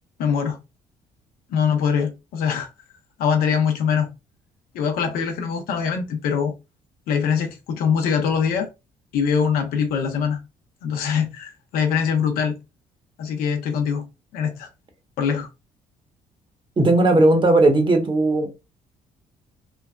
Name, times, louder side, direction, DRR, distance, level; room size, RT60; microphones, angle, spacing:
voice 1, 0.2-0.6 1.5-2.7 3.2-4.1 4.7-6.5 7.1-8.7 9.1-10.4 10.8-12.6 13.2-14.1 14.3-14.7 15.2-15.5, left 7 dB, 80° left, 0.7 m, -23 dB
voice 2, 16.8-18.5, right 2 dB, 30° right, 1.0 m, -17 dB
3.2 x 2.2 x 2.3 m
supercardioid pair, 65°, 15 cm